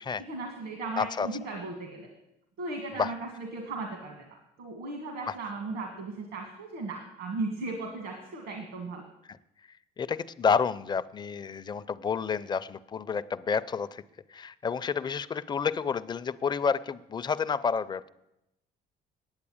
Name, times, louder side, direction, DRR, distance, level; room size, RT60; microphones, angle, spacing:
voice 1, 0.2-2.1 2.6-9.0, right 3 dB, 85° right, 2 dB, 2.0 m, -37 dB
voice 2, 1.0-1.3 2.9-3.1 5.3-5.4 10.0-14.0 14.3-18.1, left 6 dB, 25° left, 14 dB, 0.5 m, -29 dB
9.8 x 8.4 x 8.6 m, 0.88 s
cardioid pair, 110°, 17 cm